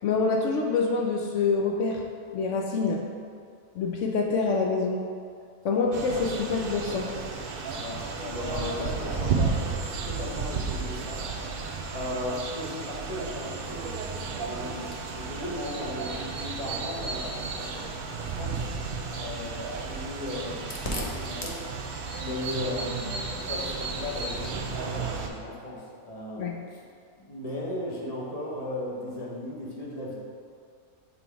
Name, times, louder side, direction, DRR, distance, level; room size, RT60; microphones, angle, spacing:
voice 1, 0.0-2.0 2.3-3.0 3.8-5.0 5.6-7.1 26.4-26.6, left 4 dB, 65° left, 0 dB, 0.8 m, -26 dB
sound 1, 5.9-25.3, right 4 dB, 75° right, 0.5 m, -33 dB
voice 2, 7.7-11.3 11.9-18.7 19.1-21.6 22.2-23.0 23.4-26.8 27.2-30.2, left 1 dB, 30° left, -5 dB, 0.9 m, -36 dB
5.7 x 4.0 x 4.5 m, 2.3 s
omnidirectional pair, 1.6 m